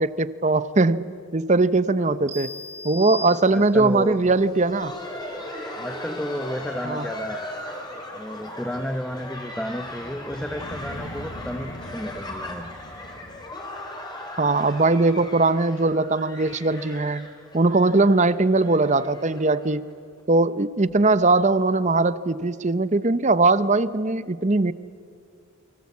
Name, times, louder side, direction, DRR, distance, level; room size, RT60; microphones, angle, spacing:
voice 1, 0.0-2.5 2.8-4.9 6.8-7.1 14.4-17.3 17.5-19.9 20.3-24.7, right 3 dB, 35° right, 15 dB, 0.7 m, -20 dB
voice 2, 2.0-2.3 3.5-4.2 5.7-7.5 8.1-12.7, equal, 5° left, 6 dB, 1.0 m, -32 dB
sound 1, 2.3-4.0, left 2 dB, 60° right, 5.5 m, -37 dB
Laughter, 4.2-19.9 20.2-20.3 20.9-21.0 21.5-21.7 22.8-22.9, left 1 dB, 20° left, 4.0 m, -38 dB
sound 2, 7.5-13.5, equal, 60° left, 6.1 m, -42 dB
29.0 x 24.0 x 8.4 m, 2.3 s
head